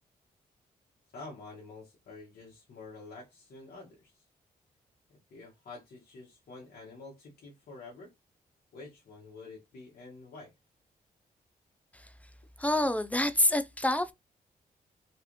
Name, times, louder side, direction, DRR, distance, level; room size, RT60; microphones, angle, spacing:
voice 1, 1.1-4.1 5.3-8.1 8.7-10.5, left 3 dB, 75° left, 1.2 m, -48 dB
voice 2, 12.6-14.1, left 1 dB, 10° left, 0.4 m, -27 dB
3.1 x 2.4 x 3.1 m
cardioid pair, 60°, 16 cm